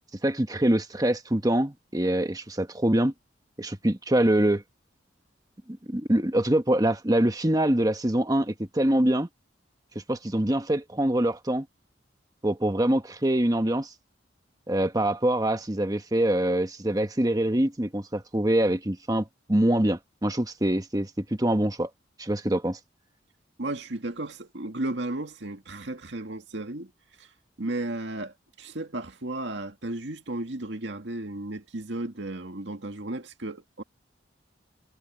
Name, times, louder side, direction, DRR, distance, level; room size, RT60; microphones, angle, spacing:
voice 1, 0.2-3.1 3.6-4.6 5.9-9.3 10.1-11.6 12.4-13.9 14.7-19.2 19.5-21.1 21.4-21.9 22.2-22.8, right 1 dB, 20° right, 1.2 m, -24 dB
voice 2, 23.6-26.9 27.2-27.3 27.6-33.8, right 2 dB, 75° right, 2.1 m, -34 dB
head